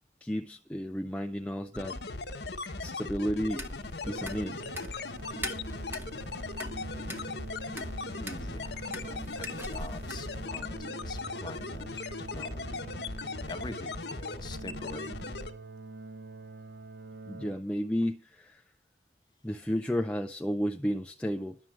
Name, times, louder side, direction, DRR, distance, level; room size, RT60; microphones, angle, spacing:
voice 1, 0.2-2.0 2.8-3.7 4.1-4.6 17.3-18.6 19.4-21.6, equal, 5° left, 0.5 m, -32 dB
sound 1, 1.7-15.5, left 3 dB, 75° left, 1.3 m, -38 dB
sound 2, 3.5-10.5, equal, 15° right, 1.1 m, -44 dB
sound 3, 4.0-17.5, right 2 dB, 90° right, 1.0 m, -46 dB
voice 2, 8.2-12.9 13.5-15.2, left 2 dB, 25° left, 1.1 m, -45 dB
11.0 x 7.4 x 7.3 m
head